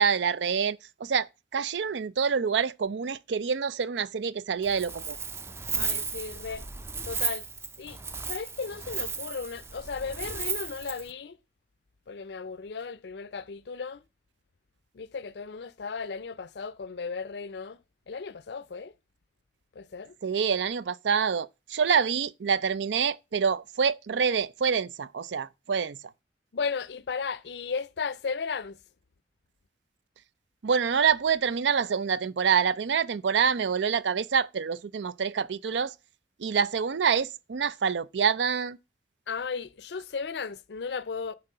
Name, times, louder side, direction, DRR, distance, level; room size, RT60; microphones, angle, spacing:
voice 1, 0.0-5.2 20.2-26.0 30.6-35.9 36.4-38.8, right 6 dB, 85° right, 0.5 m, -26 dB
Wind, 4.6-11.1, right 5 dB, 15° right, 0.4 m, -34 dB
voice 2, 5.8-6.7 7.0-7.5 7.8-8.0 8.2-11.4 12.1-14.0 14.9-17.8 18.1-18.9 19.8-20.2 26.5-28.8 39.3-41.3, left 5 dB, 70° left, 0.5 m, -35 dB
9.8 x 4.4 x 6.6 m
head